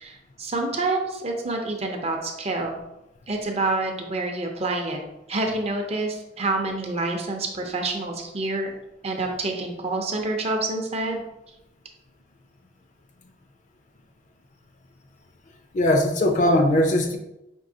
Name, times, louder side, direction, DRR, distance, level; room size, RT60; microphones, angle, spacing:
voice 1, 0.0-2.8 3.3-5.0 5.3-8.7 9.0-11.2, right 2 dB, 35° right, 3 dB, 0.6 m, -27 dB
voice 2, 15.7-17.2, left 1 dB, 45° left, 4 dB, 0.5 m, -20 dB
5.3 x 2.7 x 2.7 m, 0.89 s
head